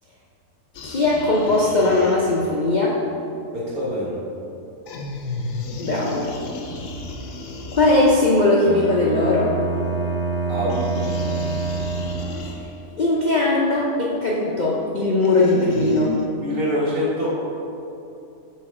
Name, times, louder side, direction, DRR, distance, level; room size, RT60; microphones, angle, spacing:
sound 1, 0.7-2.6 4.9-8.6 10.7-13.0 15.2-16.3, left 2 dB, 65° left, 0.8 m, -33 dB
voice 1, 0.8-3.0 5.8-6.3 7.7-9.5 13.0-16.2, left 2 dB, 80° left, -4 dB, 0.4 m, -19 dB
voice 2, 3.5-4.2 10.5-10.8 16.4-17.4, left 1 dB, 65° right, -8 dB, 2.1 m, -25 dB
Bowed string instrument, 8.6-12.6, right 3 dB, 30° left, 0.5 m, -26 dB
4.7 x 3.8 x 5.7 m, 2.7 s
omnidirectional pair, 1.6 m